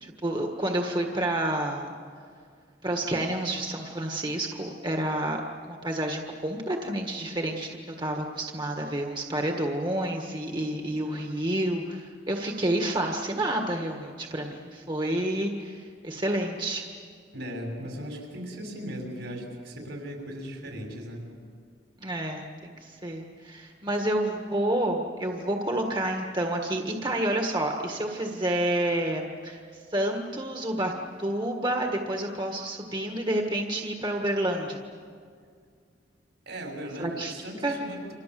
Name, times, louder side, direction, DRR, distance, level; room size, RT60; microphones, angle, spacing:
voice 1, 0.0-1.9 2.8-16.9 22.0-29.6 29.9-30.9 31.2-34.8 37.0-37.4 37.6-37.8, right 1 dB, 25° right, 2 dB, 1.6 m, -29 dB
voice 2, 17.3-21.3 36.5-38.1, equal, 75° right, 2 dB, 6.4 m, -37 dB
29.5 x 26.0 x 7.7 m, 2.1 s
head